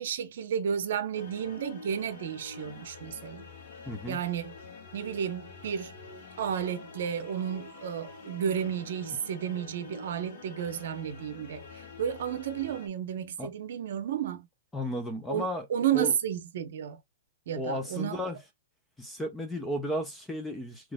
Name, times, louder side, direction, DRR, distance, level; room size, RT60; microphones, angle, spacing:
voice 1, 0.0-3.5 4.1-4.5 4.9-5.9 6.4-11.6 12.0-14.5 15.3-17.0 17.5-18.2, right 8 dB, 55° right, 0.8 m, -32 dB
sound 1, 1.1-12.9, left 3 dB, 45° left, 1.2 m, -47 dB
voice 2, 3.9-4.2 13.4-13.5 14.7-15.7 15.9-16.1 17.5-18.4 19.0-20.9, equal, 5° left, 0.4 m, -34 dB
3.9 x 3.0 x 2.2 m
hypercardioid pair, 175°, 0 cm